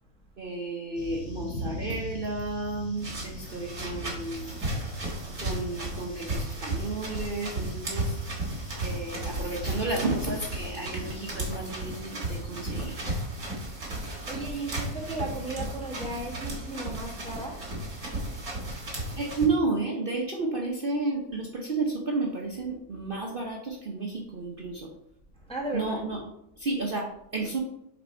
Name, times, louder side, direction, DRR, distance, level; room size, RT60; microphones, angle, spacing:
voice 1, 0.4-4.5 5.4-8.2 8.8-13.0 19.1-24.9 25.7-26.2 26.6-27.1 27.3-27.6, right 3 dB, 45° right, 0.9 m, -32 dB
sound 1, 0.9-11.4, equal, 65° left, 2.9 m, -42 dB
sound 2, 3.0-19.5, right 2 dB, 75° right, 2.7 m, -34 dB
voice 2, 14.3-17.8 25.4-26.0, right 1 dB, 5° left, 1.0 m, -35 dB
7.0 x 3.7 x 4.3 m
omnidirectional pair, 1.6 m